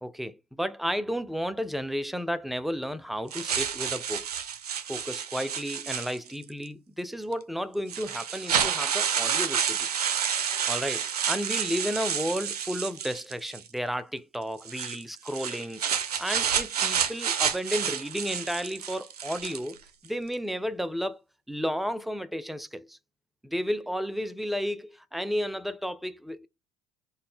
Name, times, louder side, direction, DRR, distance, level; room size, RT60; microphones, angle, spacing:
voice 1, 0.0-4.3 4.9-9.9 10.7-15.8 16.2-19.8 20.0-21.2 21.5-23.0 23.4-26.5, equal, ahead, 0.3 m, -32 dB
sound 1, 3.3-6.5 7.3-7.4 7.9-13.7 14.6-19.8, right 8 dB, 85° right, 0.4 m, -29 dB
3.6 x 2.1 x 3.8 m
hypercardioid pair, 65°, 19 cm